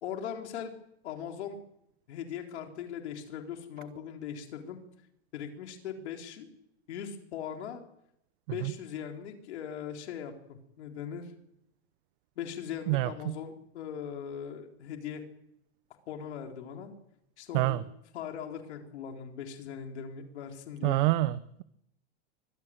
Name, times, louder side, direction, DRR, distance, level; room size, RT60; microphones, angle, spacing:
voice 1, 0.0-0.7 1.0-1.6 2.1-4.8 5.3-6.5 6.9-7.8 8.5-11.3 12.4-15.2 16.1-16.9 17.4-17.8 18.1-21.0, left 8 dB, 90° left, 3 dB, 3.9 m, -40 dB
voice 2, 12.9-13.3 17.5-17.8 20.8-21.6, right 18 dB, 50° right, 14 dB, 0.9 m, -27 dB
24.5 x 17.5 x 9.1 m, 0.79 s
supercardioid pair, 165°, 33 cm